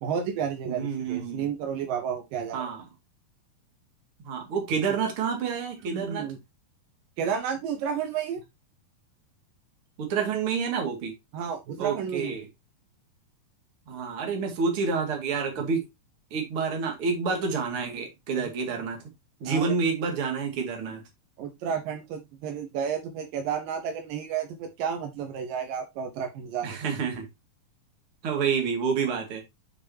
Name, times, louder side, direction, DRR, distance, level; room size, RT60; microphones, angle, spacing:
voice 1, 0.0-2.7 5.8-6.4 7.2-8.4 11.3-12.4 18.3-18.4 19.5-19.7 21.4-26.8, right 7 dB, 75° right, 2.6 m, -31 dB
voice 2, 0.7-1.5 2.5-2.8 4.2-6.3 10.0-11.1 11.8-12.5 13.9-15.8 16.3-19.0 19.4-21.0 26.6-27.3 28.2-29.4, right 5 dB, 45° right, 2.6 m, -28 dB
7.9 x 6.2 x 2.7 m
omnidirectional pair, 4.0 m